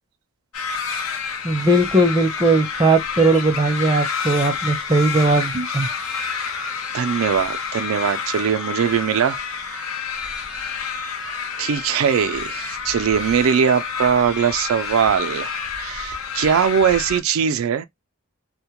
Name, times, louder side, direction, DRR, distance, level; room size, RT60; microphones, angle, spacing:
sound 1, 0.5-17.2, left 5 dB, 90° left, 0.6 m, -29 dB
voice 1, 1.4-5.9, right 2 dB, 20° right, 0.5 m, -18 dB
voice 2, 6.9-9.9 11.6-17.9, right 7 dB, 80° right, 0.3 m, -21 dB
2.2 x 2.1 x 2.8 m
head